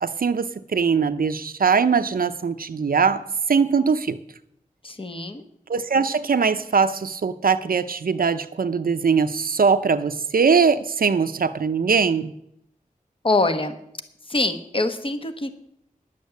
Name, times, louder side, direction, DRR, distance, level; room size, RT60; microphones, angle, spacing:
voice 1, 0.0-3.2 3.5-4.2 5.7-12.3, right 5 dB, 85° right, 10 dB, 0.7 m, -21 dB
voice 2, 4.8-5.4 13.2-13.7 14.3-15.5, left 2 dB, 35° left, 9 dB, 1.2 m, -24 dB
10.5 x 8.4 x 8.1 m, 0.75 s
wide cardioid pair, 65°, 15 cm